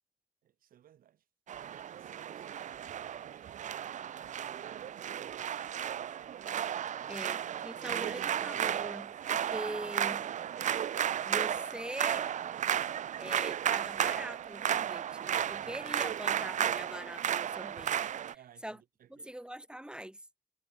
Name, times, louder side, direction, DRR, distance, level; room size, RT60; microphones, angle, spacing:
voice 1, 0.4-1.2 1.5-5.7 7.1-7.3 15.6-15.9 18.3-19.3, right 10 dB, 90° right, 7.5 m, -60 dB
sound 1, 1.5-18.3, right 9 dB, 60° right, 0.5 m, -34 dB
voice 2, 7.1-10.3 11.2-12.3 13.2-18.4 18.6-18.8 19.1-20.2, right 1 dB, 5° right, 3.5 m, -43 dB
cardioid pair, 85°, 14 cm